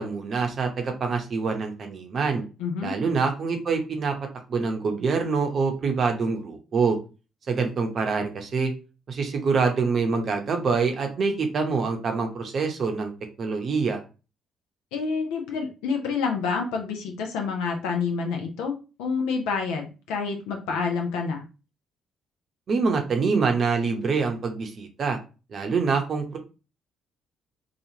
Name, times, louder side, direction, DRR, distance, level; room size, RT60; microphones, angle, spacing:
voice 1, 0.0-2.4 2.8-4.1 4.5-7.0 7.5-8.7 9.1-13.1 13.4-14.0 22.7-25.2 25.5-26.4, right 4 dB, 50° right, 4 dB, 0.7 m, -25 dB
voice 2, 2.6-2.9 14.9-18.7 19.0-21.4, left 5 dB, 75° left, 3 dB, 0.5 m, -28 dB
3.0 x 2.4 x 2.7 m, 0.32 s
hypercardioid pair, 45°, 0 cm